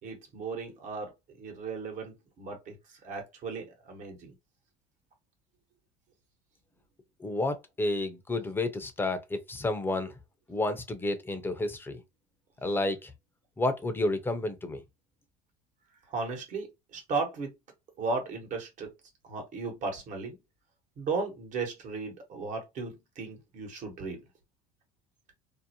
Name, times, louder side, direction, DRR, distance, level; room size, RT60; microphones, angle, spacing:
voice 1, 0.0-4.3 16.1-17.5 18.0-18.9 19.2-20.4 21.0-24.2, right 4 dB, 55° right, 1.2 m, -36 dB
voice 2, 7.2-10.1 10.5-12.0 12.6-13.1 13.6-14.8, left 2 dB, 15° left, 0.6 m, -30 dB
2.6 x 2.1 x 2.8 m
supercardioid pair, 95°, 16 cm